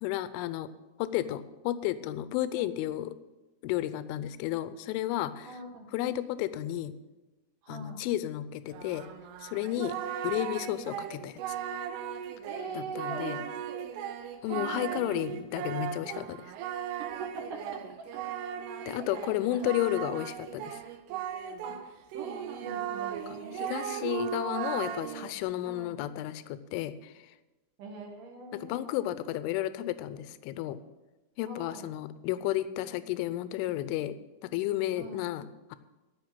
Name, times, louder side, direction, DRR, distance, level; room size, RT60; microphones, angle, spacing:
voice 1, 0.0-0.7 1.0-3.1 3.6-5.5 5.9-6.9 7.7-9.1 9.4-10.0 10.2-11.4 12.7-13.4 14.4-16.5 18.9-20.8 23.5-27.1 28.6-30.8 31.4-34.2 34.5-35.8, left 13 dB, 80° left, 14 dB, 3.0 m, -32 dB
voice 2, 5.4-5.9 7.6-8.0 12.5-14.1 14.5-15.0 17.1-17.8 18.1-18.2 18.8-19.7 21.6-21.8 22.1-23.8 25.6-26.0 27.8-29.3 31.5-31.8 35.0-35.2, right 3 dB, 60° right, 2 dB, 2.4 m, -43 dB
Singing, 8.7-21.8 22.1-25.3, right 9 dB, 90° right, 3.3 m, -37 dB
15.5 x 5.7 x 8.8 m, 1.1 s
omnidirectional pair, 5.6 m